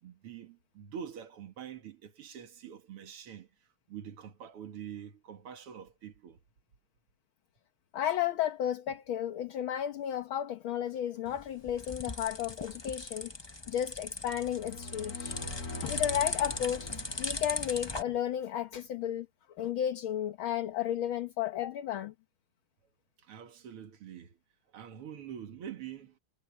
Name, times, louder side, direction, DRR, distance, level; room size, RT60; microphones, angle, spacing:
voice 1, 0.0-6.4 23.2-24.4 24.7-26.2, right 8 dB, 90° right, 2.6 m, -45 dB
voice 2, 7.9-13.3 13.7-15.4 15.8-16.9 17.2-19.3 19.6-22.1, left 10 dB, 70° left, 1.9 m, -33 dB
sound 1, 11.3-18.0, left 2 dB, 30° left, 0.5 m, -38 dB
sound 2, 14.3-18.2, left 2 dB, 45° left, 2.4 m, -44 dB
omnidirectional pair, 2.4 m